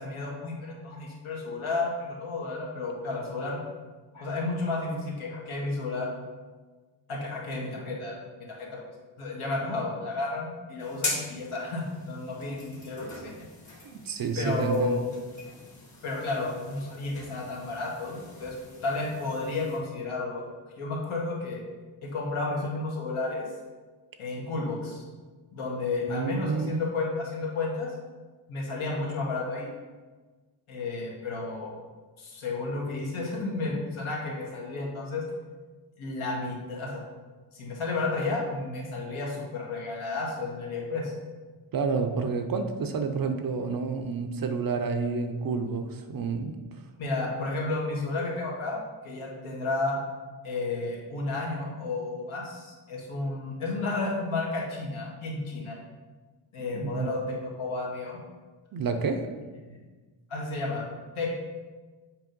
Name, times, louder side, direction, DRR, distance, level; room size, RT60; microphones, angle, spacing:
voice 1, 0.0-3.6 4.1-6.1 7.1-8.8 9.2-13.4 14.3-15.0 16.0-18.5 18.8-20.5 20.8-21.6 22.0-23.4 24.2-25.0 25.5-27.9 28.5-29.7 30.7-31.7 32.2-35.2 36.0-37.0 37.5-41.1 47.0-50.0 50.4-55.8 56.5-58.2 59.7-59.8 60.3-60.9 61.1-61.3, left 3 dB, 75° left, -2 dB, 1.7 m, -32 dB
sound 1, 10.8-19.8, left 2 dB, 35° left, 1.5 m, -41 dB
voice 2, 13.9-15.0 26.1-26.8 41.7-46.6 56.7-57.1 58.7-59.2, right 5 dB, 45° right, 6 dB, 0.5 m, -29 dB
7.6 x 3.0 x 5.2 m, 1.3 s
wide cardioid pair, 160°, 50 cm